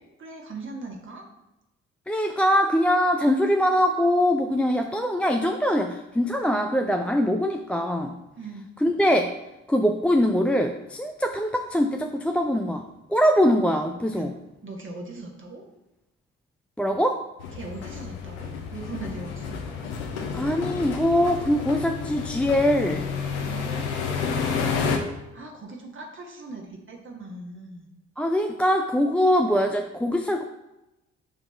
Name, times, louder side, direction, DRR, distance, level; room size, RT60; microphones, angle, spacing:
voice 1, 0.2-1.2 8.4-8.6 14.1-14.3 14.6-15.6 17.5-19.6 23.4-24.1 25.3-27.9, right 3 dB, 35° right, 0 dB, 1.6 m, -39 dB
voice 2, 2.1-8.2 8.8-9.3 9.7-14.3 16.8-17.2 20.3-23.1 28.2-30.4, equal, 5° left, 4 dB, 0.4 m, -23 dB
sound 1, 17.4-25.0, left 5 dB, 70° left, 0.8 m, -30 dB
6.6 x 3.5 x 4.4 m, 0.95 s
figure-of-eight pair, 40°, 36 cm